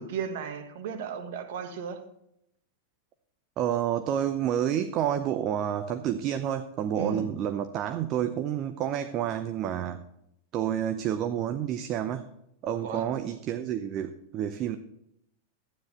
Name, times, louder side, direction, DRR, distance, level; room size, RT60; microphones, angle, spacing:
voice 1, 0.0-2.0 6.9-7.3 12.8-13.1, right 6 dB, 55° right, 1.4 m, -35 dB
voice 2, 3.6-10.0 10.5-12.3 12.6-14.8, right 10 dB, 35° right, 0.7 m, -29 dB
12.5 x 9.7 x 4.4 m
figure-of-eight pair, 90°, 0 cm